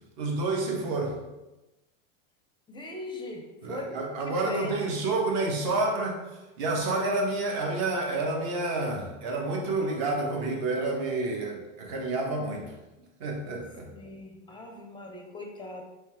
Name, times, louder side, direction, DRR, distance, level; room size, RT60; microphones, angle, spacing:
voice 1, 0.2-1.2 3.6-6.2 6.6-12.6 13.2-13.9, right 2 dB, 50° right, 0 dB, 1.1 m, -29 dB
voice 2, 2.7-4.0 4.2-4.9 13.9-15.8, left 2 dB, 10° left, 1 dB, 0.5 m, -40 dB
3.2 x 3.2 x 3.3 m, 1.0 s
hypercardioid pair, 110°, 40 cm